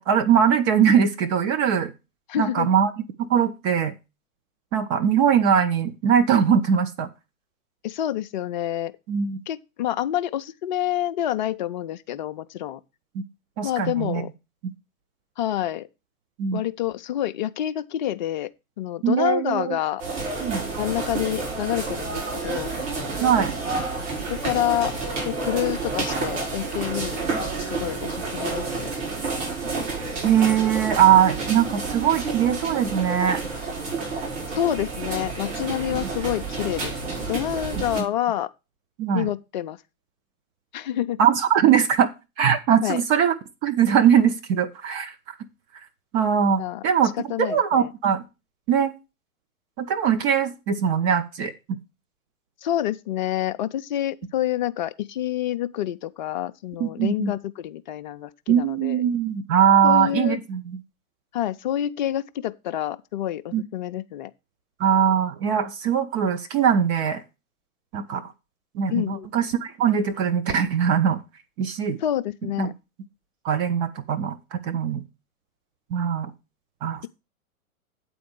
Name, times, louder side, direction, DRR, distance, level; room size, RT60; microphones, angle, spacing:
voice 1, 0.0-1.9 2.4-2.9 3.2-3.9 4.7-7.1 9.1-9.4 13.1-13.2 13.6-14.2 16.4-16.6 19.0-19.8 20.4-20.6 23.2-23.5 30.2-33.4 37.7-38.1 39.0-39.3 41.2-42.1 42.4-43.3 43.6-45.1 46.1-48.2 48.7-48.9 49.8-51.5 56.8-57.3 58.5-60.8 63.5-63.6 64.8-67.2 67.9-68.3 68.7-71.2 71.6-72.0 72.6-72.7 73.4-75.0 75.9-76.3 76.8-77.1, right 8 dB, 25° right, 0.6 m, -21 dB
voice 2, 2.3-2.7 7.8-8.9 9.5-12.8 13.6-14.3 15.4-15.9 16.5-18.5 18.8-20.0 20.8-22.7 24.3-24.9 25.2-28.9 34.5-36.9 37.3-38.5 39.1-39.8 40.7-41.2 42.8-43.0 46.6-46.8 47.3-47.9 52.6-59.0 59.8-60.4 61.3-64.3 68.9-69.3 72.0-72.7, left 12 dB, 35° left, 0.5 m, -28 dB
sound 1, 20.0-38.0, right 3 dB, 55° right, 4.9 m, -30 dB
8.5 x 4.3 x 7.0 m
figure-of-eight pair, 110°, 43 cm